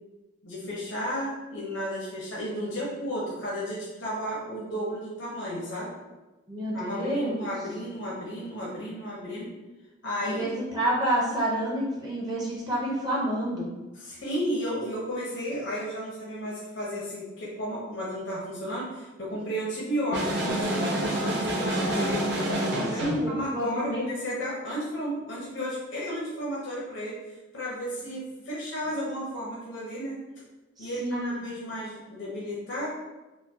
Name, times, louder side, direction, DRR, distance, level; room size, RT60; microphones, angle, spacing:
voice 1, 0.4-5.9 6.7-9.5 10.0-10.5 14.0-27.2 27.5-30.2 30.8-32.9, equal, 70° left, -6 dB, 0.8 m, -33 dB
voice 2, 6.5-7.4 10.2-13.7 22.9-24.1 30.8-31.4, right 1 dB, 20° right, -4 dB, 0.6 m, -28 dB
sound 1, 20.1-23.3, right 1 dB, 60° right, 0.8 m, -27 dB
4.4 x 2.1 x 2.8 m, 1.1 s
head